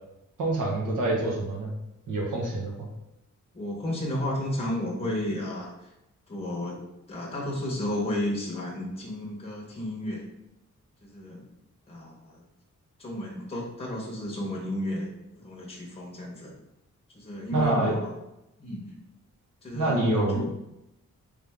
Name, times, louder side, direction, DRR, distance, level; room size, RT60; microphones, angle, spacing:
voice 1, 0.4-1.7 2.1-2.9 17.5-18.0 19.7-20.5, right 2 dB, 80° right, -1 dB, 1.1 m, -26 dB
voice 2, 3.5-5.9 6.3-6.8 7.1-10.2 11.0-11.4 11.9-12.4 13.0-16.5 17.1-18.1 18.6-18.9 19.6-20.5, left 1 dB, 20° left, -3 dB, 0.9 m, -33 dB
3.5 x 3.3 x 3.5 m, 0.88 s
wide cardioid pair, 175°, 31 cm